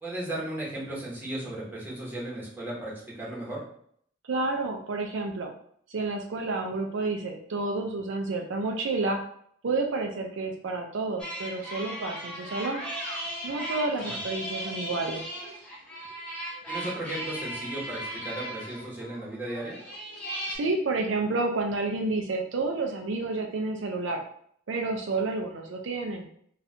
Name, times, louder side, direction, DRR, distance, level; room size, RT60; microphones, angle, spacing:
voice 1, 0.0-3.6 14.0-14.2 16.7-19.8, right 1 dB, 10° right, -7 dB, 1.2 m, -35 dB
voice 2, 4.2-5.5 5.9-9.2 9.6-12.8 13.4-15.2 20.5-24.2 24.7-26.3, right 3 dB, 75° right, 2 dB, 0.4 m, -30 dB
sound 1, 11.2-20.6, equal, 5° left, 0.8 m, -37 dB
2.6 x 2.4 x 4.2 m, 0.64 s
head